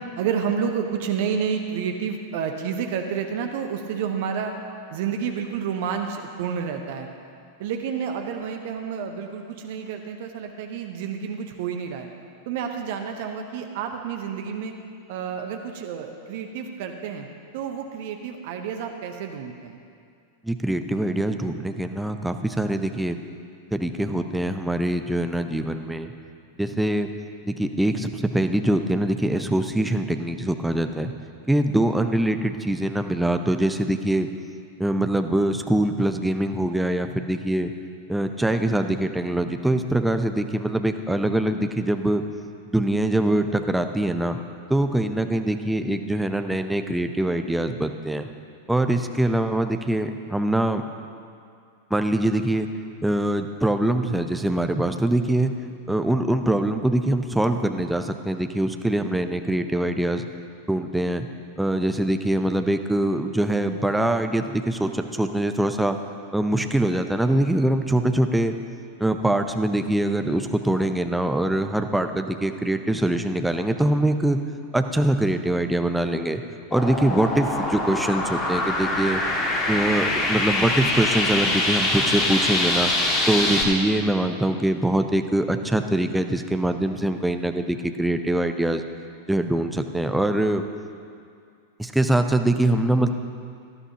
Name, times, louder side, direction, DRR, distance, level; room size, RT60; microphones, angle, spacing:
voice 1, 0.2-4.5 4.9-7.1 7.6-12.1 12.5-14.7 15.1-17.3 17.5-19.8 66.6-66.9 79.6-79.8, right 7 dB, 50° right, 4 dB, 0.9 m, -30 dB
voice 2, 20.4-23.2 23.7-26.1 26.6-27.1 27.5-31.1 31.5-34.3 34.8-37.7 38.1-42.2 42.7-44.4 44.7-48.3 48.7-50.8 51.9-52.7 53.0-55.5 55.9-60.3 60.7-61.3 61.6-66.0 66.3-68.6 69.0-74.4 74.7-76.4 76.7-79.2 79.7-82.9 83.3-88.8 89.3-90.6 91.8-93.1, right 1 dB, 5° right, 6 dB, 0.7 m, -23 dB
sound 1, 76.7-83.6, left 2 dB, 30° left, 1.9 m, -24 dB
18.5 x 12.5 x 2.9 m, 2.3 s
figure-of-eight pair, 90°, 0 cm